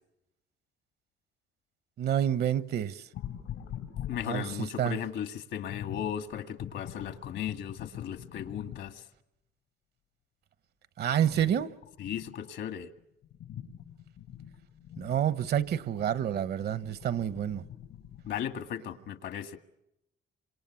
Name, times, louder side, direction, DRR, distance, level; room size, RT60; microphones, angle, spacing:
voice 1, 2.0-3.0 4.2-5.0 11.0-11.7 15.0-17.6, right 10 dB, 55° right, 1.0 m, -28 dB
sound 1, 3.1-4.8 5.7-9.0 11.2-12.5 13.0-18.5, left 10 dB, 85° left, 4.3 m, -44 dB
voice 2, 4.1-9.0 12.0-12.9 18.3-19.6, left 9 dB, 70° left, 1.9 m, -36 dB
27.0 x 26.0 x 7.1 m
cardioid pair, 155°, 19 cm